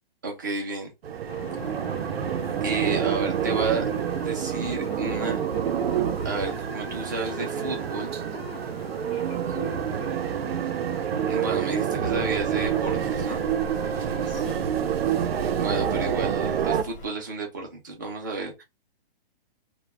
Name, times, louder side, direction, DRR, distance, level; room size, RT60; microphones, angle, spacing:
voice 1, 0.2-0.9 2.6-3.9 4.2-5.4 6.2-8.2 11.3-13.5 15.6-18.6, right 3 dB, 20° right, 0.4 m, -31 dB
sound 1, 1.0-16.8, right 8 dB, 90° right, 0.5 m, -27 dB
sound 2, 1.3-14.5, left 8 dB, 90° left, 0.5 m, -44 dB
voice 2, 9.1-10.6 11.7-11.8 14.2-14.7, equal, 30° left, 0.5 m, -41 dB
Rain, 12.1-17.1, equal, 65° left, 0.8 m, -42 dB
2.2 x 2.0 x 3.0 m
hypercardioid pair, 170°, 29 cm